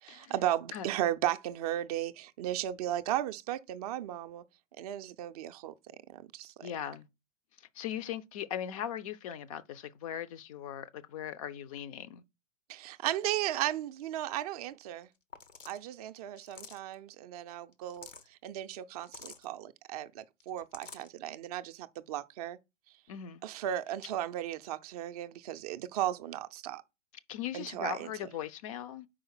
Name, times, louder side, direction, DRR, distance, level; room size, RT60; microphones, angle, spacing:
voice 1, 0.0-4.4 4.8-5.7 6.1-6.7 12.7-15.1 15.7-22.6 23.4-26.8 27.5-28.1, right 12 dB, 30° right, 0.5 m, -35 dB
voice 2, 6.6-7.1 7.6-12.2 23.1-23.4 27.3-29.1, left 10 dB, 30° left, 0.5 m, -39 dB
sound 1, 15.0-15.1 15.3-15.8 16.4-16.9 17.7-18.3 19.0-19.5 20.4-21.1, left 5 dB, 85° left, 1.0 m, -49 dB
4.9 x 4.9 x 5.9 m
figure-of-eight pair, 105°, 37 cm